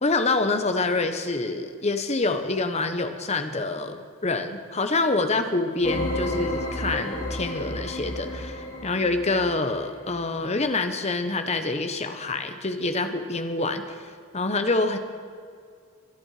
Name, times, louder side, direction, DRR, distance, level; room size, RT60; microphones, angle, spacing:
voice 1, 0.0-14.0 14.3-15.0, left 3 dB, 30° left, 8 dB, 1.0 m, -26 dB
sound 1, 5.8-10.1, left 1 dB, 55° left, 4.8 m, -32 dB
24.0 x 9.7 x 4.9 m, 2.2 s
head